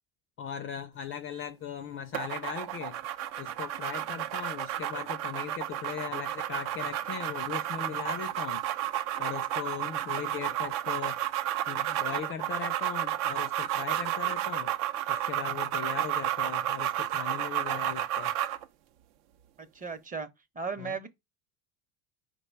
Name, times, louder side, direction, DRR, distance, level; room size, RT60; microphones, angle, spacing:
voice 1, 0.4-3.0 3.4-8.6 9.2-11.2 11.7-14.7 15.1-18.3 20.8-20.9, left 8 dB, 30° left, 0.4 m, -39 dB
sound 1, 2.1-18.6, right 12 dB, 60° right, 0.6 m, -32 dB
voice 2, 19.6-20.3 20.5-21.1, right 5 dB, 20° right, 0.7 m, -36 dB
4.8 x 2.2 x 4.5 m
hypercardioid pair, 90°, 42 cm